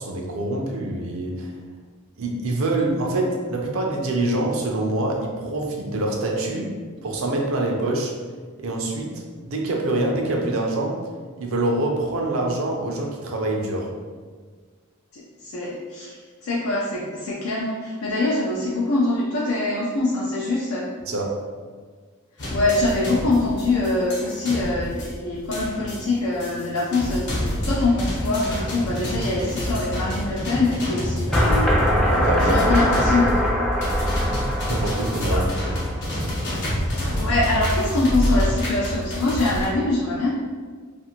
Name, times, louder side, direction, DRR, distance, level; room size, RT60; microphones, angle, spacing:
voice 1, 0.0-1.5 2.2-6.7 7.0-8.1 8.6-11.0 11.4-13.9 21.1-21.4 32.1-32.8 34.3-35.5, right 2 dB, 70° right, 1 dB, 0.5 m, -25 dB
voice 2, 15.1-20.9 22.5-31.7 32.4-33.3 35.3-35.4 37.0-40.3, left 2 dB, 80° left, -5 dB, 0.5 m, -24 dB
sound 1, 22.4-39.7, equal, 55° left, 0.8 m, -27 dB
sound 2, 31.3-36.3, equal, ahead, 0.3 m, -22 dB
2.5 x 2.5 x 2.8 m, 1.5 s
head